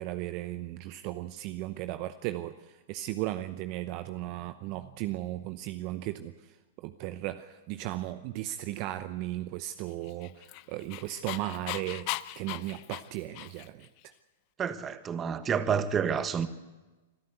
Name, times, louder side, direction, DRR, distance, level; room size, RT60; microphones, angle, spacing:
voice 1, 0.0-12.1 12.4-14.1, right 15 dB, 45° right, 0.8 m, -36 dB
Dog, 10.0-13.9, left 19 dB, 45° left, 0.6 m, -38 dB
voice 2, 14.6-16.5, right 7 dB, 25° right, 1.4 m, -29 dB
25.5 x 13.0 x 8.2 m
hypercardioid pair, 105°, 0 cm